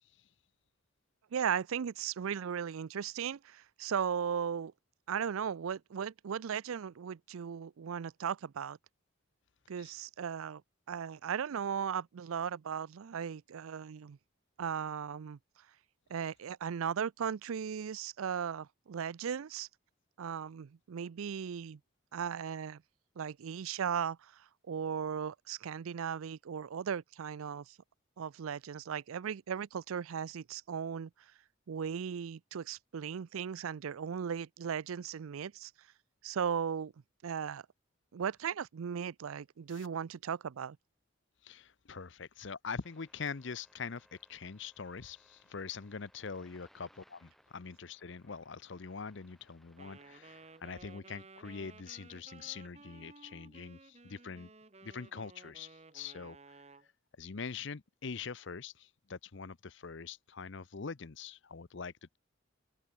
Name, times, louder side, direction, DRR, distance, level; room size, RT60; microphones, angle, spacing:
voice 1, 1.3-4.7 5.1-8.8 9.7-10.6 10.9-14.2 14.6-15.4 16.1-19.7 20.2-21.8 22.1-22.8 23.2-27.8 28.2-31.1 31.7-35.7 36.2-36.9 37.2-37.6 38.1-40.8, right 7 dB, 80° right, 0.4 m, -37 dB
voice 2, 41.4-54.5 54.8-56.6 57.2-62.2, left 5 dB, 55° left, 0.7 m, -44 dB
sound 1, 42.8-50.6, equal, ahead, 5.9 m, -67 dB
Wind instrument woodwind instrument, 49.8-56.9, right 3 dB, 30° right, 1.1 m, -56 dB
head